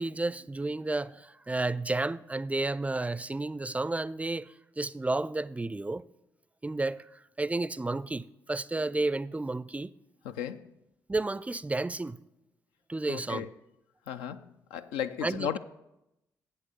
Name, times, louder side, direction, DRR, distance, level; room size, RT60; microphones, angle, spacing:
voice 1, 0.0-6.0 6.6-7.1 7.4-9.9 11.1-12.2 12.9-13.5 15.2-15.5, right 2 dB, 15° right, 0.4 m, -31 dB
voice 2, 10.2-10.7 13.1-13.5 14.1-15.6, left 9 dB, 85° left, 0.4 m, -35 dB
8.1 x 6.2 x 6.8 m
hypercardioid pair, 45°, 8 cm